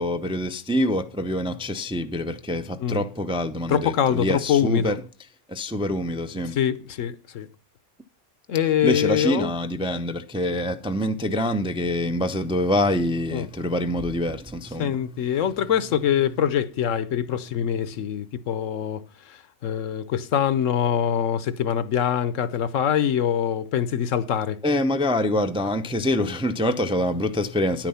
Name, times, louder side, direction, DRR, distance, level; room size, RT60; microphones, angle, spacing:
voice 1, 0.0-5.0 5.5-6.6 8.8-15.1 24.6-27.9, left 1 dB, 5° right, 0.4 m, -25 dB
voice 2, 3.7-4.9 6.5-7.5 8.5-9.5 13.3-13.5 14.8-19.0 19.3-24.6, left 9 dB, 85° left, 1.2 m, -24 dB
10.5 x 9.0 x 5.6 m
omnidirectional pair, 1.3 m